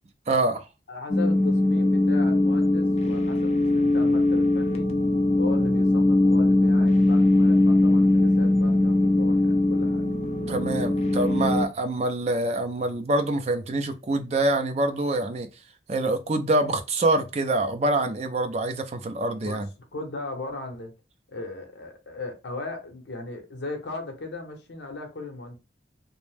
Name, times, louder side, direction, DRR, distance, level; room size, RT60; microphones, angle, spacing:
voice 1, 0.3-0.7 10.5-15.5 15.9-19.7, right 2 dB, 35° right, 0.4 m, -25 dB
voice 2, 0.9-4.9 5.4-10.1 19.4-19.7 19.9-20.9 21.3-25.6, left 2 dB, 70° left, 0.7 m, -37 dB
sound 1, 1.1-11.7, left 2 dB, 35° left, 0.4 m, -21 dB
2.6 x 2.0 x 3.2 m
head